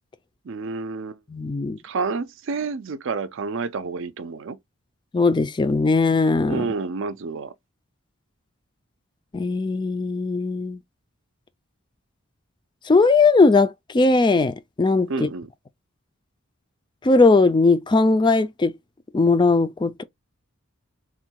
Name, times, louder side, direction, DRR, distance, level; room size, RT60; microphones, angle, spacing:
voice 1, 0.4-1.2 1.8-4.6 6.5-7.5 15.1-15.5, right 4 dB, 60° right, 0.5 m, -29 dB
voice 2, 1.3-1.8 5.1-6.7 9.3-10.8 12.9-15.3 17.0-18.7 19.1-20.0, left 3 dB, 20° left, 0.3 m, -19 dB
3.6 x 2.2 x 4.5 m
head